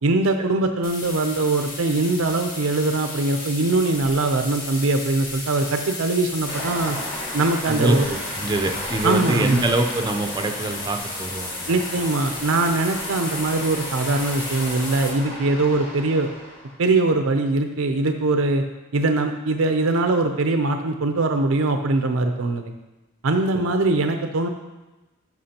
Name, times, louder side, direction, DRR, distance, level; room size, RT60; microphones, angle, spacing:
voice 1, 0.0-7.0 7.3-8.1 9.0-9.7 11.7-16.3 16.8-18.6 18.9-22.7 23.2-24.5, right 2 dB, 75° right, 6 dB, 0.6 m, -22 dB
sound 1, 0.8-15.1, left 2 dB, 45° left, 1.6 m, -34 dB
sound 2, 6.5-16.8, equal, 25° left, 1.4 m, -35 dB
voice 2, 7.7-11.5, right 2 dB, 20° right, 5 dB, 0.6 m, -24 dB
13.0 x 6.0 x 2.9 m, 1.1 s
head